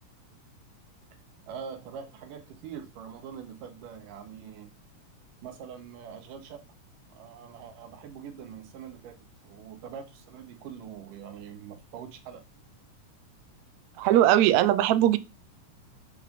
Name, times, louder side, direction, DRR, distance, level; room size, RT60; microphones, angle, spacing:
voice 1, 1.5-4.7 5.4-6.6 7.1-9.2 9.4-12.4, right 7 dB, 90° right, 3.1 m, -43 dB
voice 2, 14.0-15.2, right 13 dB, 75° right, 1.9 m, -20 dB
8.4 x 7.8 x 5.2 m
omnidirectional pair, 3.7 m